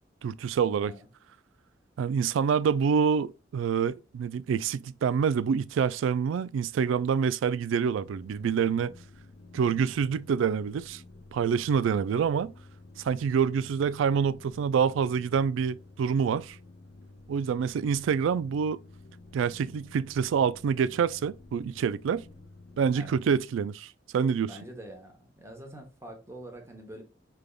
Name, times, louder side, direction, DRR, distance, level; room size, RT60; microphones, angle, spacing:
voice 1, 0.2-0.9 2.0-8.9 9.5-11.0 11.3-12.5 13.0-16.6 17.3-18.8 19.3-22.2 22.8-24.5, right 6 dB, 85° right, 0.3 m, -26 dB
sound 1, 8.0-23.4, left 2 dB, 60° left, 0.7 m, -51 dB
voice 2, 24.5-27.0, right 1 dB, 15° right, 0.9 m, -45 dB
5.1 x 3.4 x 2.3 m
head